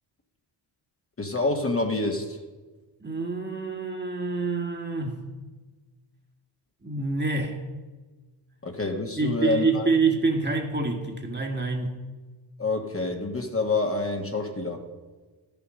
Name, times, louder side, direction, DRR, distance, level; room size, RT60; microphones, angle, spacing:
voice 1, 1.2-2.4 8.6-9.9 12.6-14.8, left 2 dB, 30° left, 3 dB, 1.5 m, -27 dB
voice 2, 3.0-5.3 6.8-7.6 9.2-12.0, right 3 dB, 20° right, 3 dB, 1.7 m, -27 dB
13.0 x 7.0 x 6.3 m, 1.3 s
cardioid pair, 65°, 48 cm